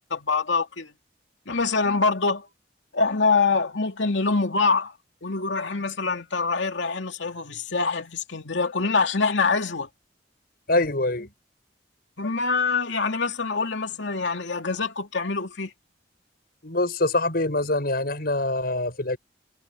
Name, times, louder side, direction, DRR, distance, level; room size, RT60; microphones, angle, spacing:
voice 1, 0.1-0.9 1.5-2.5 2.9-4.9 5.2-9.9 12.2-15.7, left 4 dB, 85° left, 2.6 m, -25 dB
voice 2, 10.7-11.3 16.6-19.2, left 2 dB, 55° left, 7.2 m, -24 dB
head